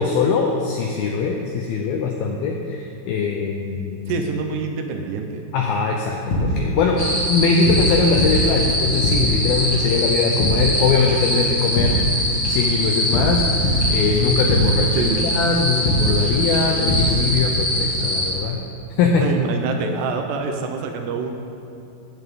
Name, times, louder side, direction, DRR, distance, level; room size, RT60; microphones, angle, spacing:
voice 1, 0.0-4.2 5.5-12.1 12.5-18.6 19.0-19.3, left 4 dB, 90° left, 1 dB, 2.1 m, -21 dB
voice 2, 4.1-5.4 14.9-15.3 19.2-21.4, right 5 dB, 75° right, 4 dB, 2.7 m, -26 dB
sound 1, 6.3-7.2 7.5-9.4 9.7-10.0 10.3-10.8 11.1-14.9 15.2-15.5 15.8-16.3 16.5-17.2, equal, 50° left, 1.8 m, -23 dB
sound 2, 7.0-18.3, equal, 20° left, 0.7 m, -24 dB
16.0 x 9.5 x 3.7 m, 2.8 s
omnidirectional pair, 5.2 m